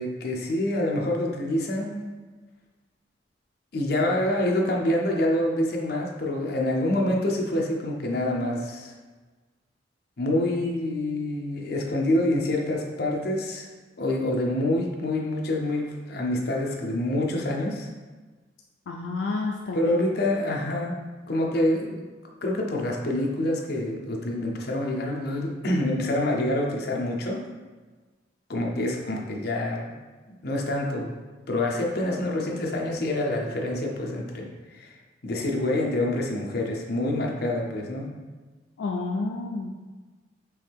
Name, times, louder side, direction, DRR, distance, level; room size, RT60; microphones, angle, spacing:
voice 1, 0.0-2.0 3.7-8.9 10.2-13.7 14.0-17.9 19.7-21.0 21.3-22.0 22.4-27.4 28.5-29.9 30.4-31.1 31.5-34.9 35.2-38.1, left 1 dB, 60° left, -1 dB, 0.7 m, -26 dB
voice 2, 18.9-20.1 38.8-39.7, left 3 dB, 85° left, 1 dB, 0.4 m, -30 dB
4.6 x 3.1 x 3.5 m, 1.3 s
head